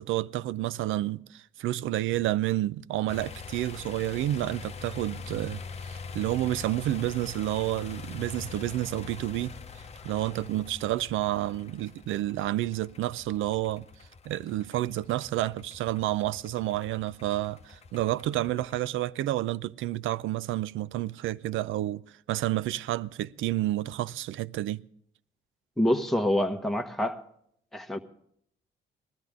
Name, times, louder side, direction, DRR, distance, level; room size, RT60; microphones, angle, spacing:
voice 1, 0.0-9.5 10.0-13.9 14.3-22.0 22.3-24.8, right 15 dB, 80° right, 0.5 m, -30 dB
sound 1, 3.1-18.8, left 5 dB, 35° left, 0.9 m, -44 dB
voice 2, 25.8-27.2 27.7-28.0, left 1 dB, ahead, 1.2 m, -26 dB
19.0 x 13.0 x 3.6 m
cardioid pair, 90°, 20 cm